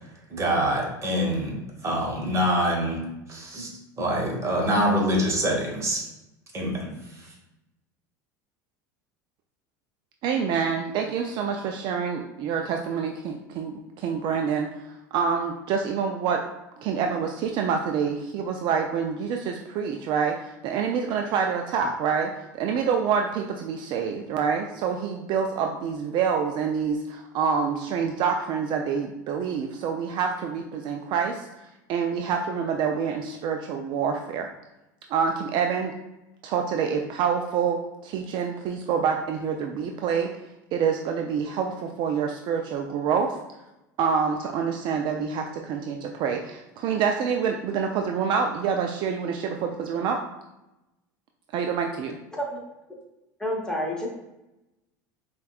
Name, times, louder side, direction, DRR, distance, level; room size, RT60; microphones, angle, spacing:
voice 1, 0.3-1.5 1.8-3.0 3.3-3.7 4.0-6.0 6.5-6.9, equal, 30° right, -1 dB, 1.2 m, -25 dB
voice 2, 10.2-16.4 16.8-31.5 31.9-34.5 35.1-35.9 36.4-40.3 40.7-43.4 44.0-50.2 51.5-52.2, right 6 dB, 50° right, 3 dB, 0.4 m, -27 dB
voice 3, 52.3-52.6 52.9-53.0 53.4-54.1, equal, 5° left, -2 dB, 1.1 m, -29 dB
5.3 x 2.3 x 2.3 m, 0.94 s
hypercardioid pair, 85°, 10 cm